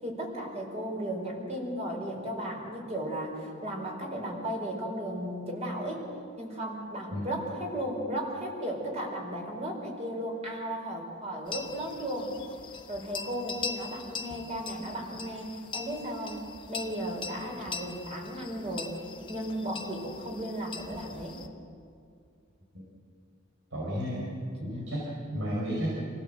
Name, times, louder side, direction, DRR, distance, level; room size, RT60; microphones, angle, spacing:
voice 1, 0.0-6.0 6.4-12.3 12.9-18.9 19.3-21.4 23.9-24.2, right 1 dB, 35° right, 0 dB, 4.7 m, -35 dB
sound 1, 11.5-21.5, left 5 dB, 25° left, 1.4 m, -42 dB
voice 2, 23.7-24.3 24.6-25.9, equal, 90° right, -5 dB, 5.0 m, -33 dB
26.0 x 16.5 x 7.8 m, 2.3 s
head